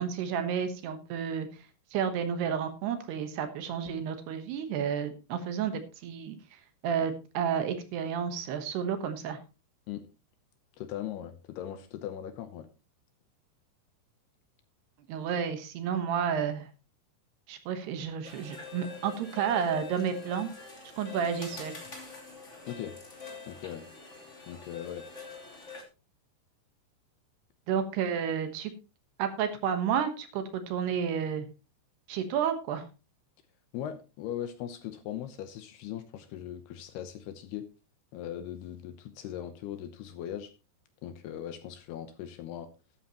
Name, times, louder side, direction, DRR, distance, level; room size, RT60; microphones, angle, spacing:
voice 1, 0.0-1.5 1.9-6.4 6.8-9.4 15.1-16.7 17.5-20.5 21.0-21.7 27.7-28.7 29.2-31.5 32.1-32.9, right 7 dB, 70° right, 8 dB, 3.1 m, -31 dB
voice 2, 10.8-12.7 22.7-22.9 23.5-23.9 24.5-25.1 33.7-37.7 38.1-40.5 41.0-42.7, left 10 dB, 75° left, 10 dB, 2.7 m, -39 dB
sound 1, 18.2-25.8, left 4 dB, 20° left, 2.1 m, -45 dB
13.0 x 11.5 x 3.0 m, 0.30 s
omnidirectional pair, 5.2 m